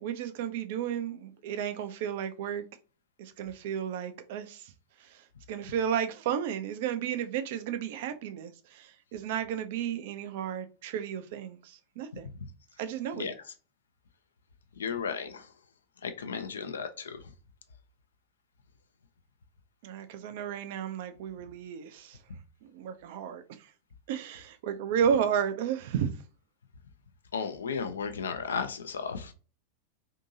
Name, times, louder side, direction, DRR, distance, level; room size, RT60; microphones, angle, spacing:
voice 1, 0.0-2.6 3.2-4.7 5.0-12.3 12.8-13.2 19.8-22.2 22.6-23.7 24.1-26.1, right 8 dB, 50° right, 0.4 m, -33 dB
voice 2, 14.8-15.5 16.0-17.3 27.3-29.3, left 6 dB, 70° left, 0.4 m, -34 dB
2.7 x 2.6 x 2.6 m
figure-of-eight pair, 90°, 0 cm